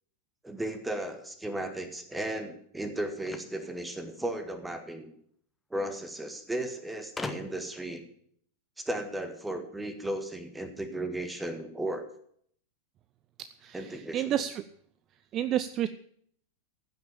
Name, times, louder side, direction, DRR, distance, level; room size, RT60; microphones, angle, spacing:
voice 1, 0.4-5.1 5.7-8.1 8.8-12.1 13.7-14.4, right 1 dB, 5° right, 8 dB, 1.6 m, -35 dB
sound 1, 3.2-4.7 5.8-5.9 6.1-6.2 7.2-7.8, left 3 dB, 10° left, 1.1 m, -40 dB
voice 2, 14.1-14.6 15.3-15.9, right 11 dB, 30° right, 13 dB, 0.4 m, -29 dB
15.5 x 6.1 x 6.9 m, 0.65 s
figure-of-eight pair, 90°, 0 cm